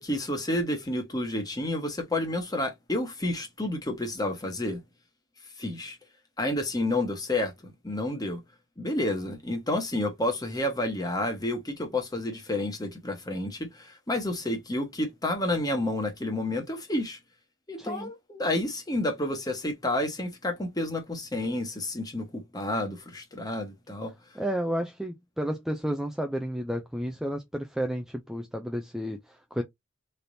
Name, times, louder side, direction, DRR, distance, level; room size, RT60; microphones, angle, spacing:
voice 1, 0.0-4.8 5.6-6.0 6.4-8.4 8.8-17.2 17.7-24.1, left 1 dB, 20° left, 1.1 m, -30 dB
voice 2, 17.8-18.1 24.4-29.6, equal, ahead, 0.3 m, -32 dB
4.1 x 3.4 x 2.6 m
head